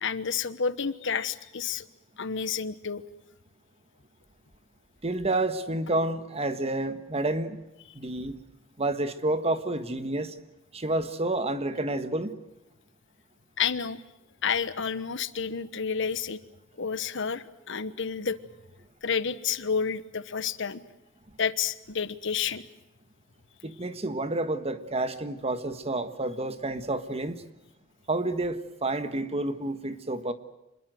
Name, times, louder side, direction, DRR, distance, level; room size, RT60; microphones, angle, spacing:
voice 1, 0.0-1.9 2.2-3.0 13.6-14.0 14.4-16.4 16.8-18.4 19.0-20.8 21.4-22.7, left 6 dB, 65° left, 14 dB, 1.2 m, -30 dB
voice 2, 5.0-7.6 7.9-8.4 8.8-10.3 10.7-12.4 23.6-27.4 28.1-30.3, right 2 dB, 30° right, 11 dB, 1.6 m, -29 dB
26.5 x 22.0 x 7.8 m, 0.95 s
head